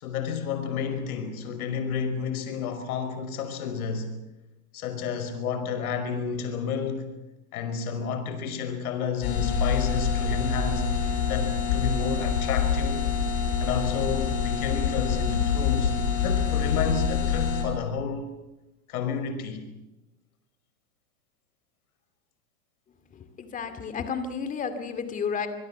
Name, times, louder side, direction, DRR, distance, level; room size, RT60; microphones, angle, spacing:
voice 1, 0.0-4.1 4.7-7.1 7.5-10.9 11.3-13.0 13.6-15.9 16.2-18.3 18.9-19.7, left 6 dB, 70° left, 5.4 m, -31 dB
sound 1, 9.2-17.6, left 6 dB, 50° left, 7.7 m, -26 dB
voice 2, 23.4-25.5, left 6 dB, 15° left, 2.4 m, -31 dB
26.5 x 21.0 x 7.1 m
supercardioid pair, 155°, 45 cm